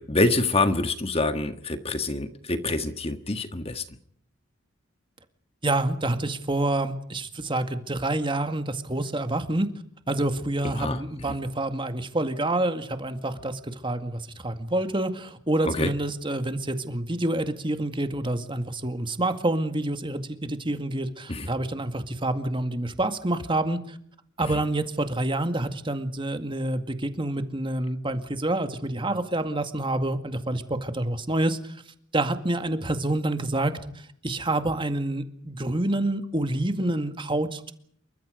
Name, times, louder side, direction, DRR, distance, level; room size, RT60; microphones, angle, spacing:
voice 1, 0.0-3.8 10.6-11.3 15.7-15.9 21.3-21.5 24.4-24.6, left 2 dB, 30° left, 9 dB, 1.6 m, -26 dB
voice 2, 5.6-9.7 10.1-23.8 24.4-31.6 32.1-33.7 34.2-37.7, right 1 dB, 25° right, 8 dB, 2.1 m, -27 dB
28.0 x 24.0 x 5.2 m, 0.65 s
head